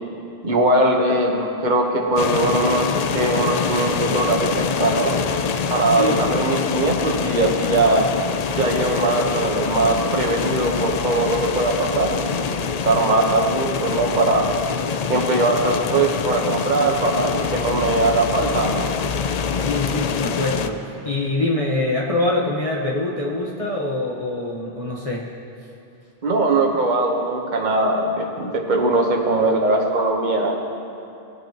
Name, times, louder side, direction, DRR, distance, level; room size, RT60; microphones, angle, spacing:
voice 1, 0.4-5.1 5.7-8.0 8.5-14.4 15.1-18.8 26.2-30.6, right 2 dB, 50° right, 0 dB, 1.2 m, -20 dB
sound 1, 2.2-20.7, left 6 dB, 55° left, 0.5 m, -25 dB
voice 2, 5.9-6.3 19.5-25.3, left 2 dB, 35° left, -5 dB, 1.2 m, -24 dB
19.0 x 9.4 x 3.0 m, 2.8 s
omnidirectional pair, 1.0 m